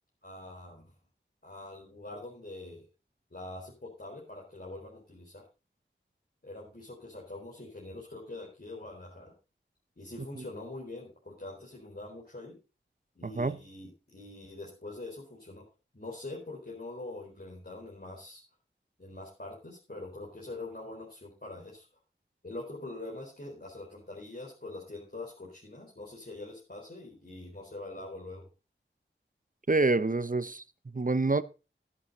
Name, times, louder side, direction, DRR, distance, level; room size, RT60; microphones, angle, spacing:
voice 1, 0.2-0.9 1.4-2.8 3.3-5.4 6.4-9.3 10.0-12.6 13.1-15.6 15.9-18.4 19.0-21.9 22.4-28.5, left 2 dB, 50° left, 4.4 m, -44 dB
voice 2, 13.2-13.6 29.7-31.4, right 3 dB, 40° right, 0.8 m, -27 dB
12.5 x 10.5 x 4.1 m
wide cardioid pair, 40°, 21 cm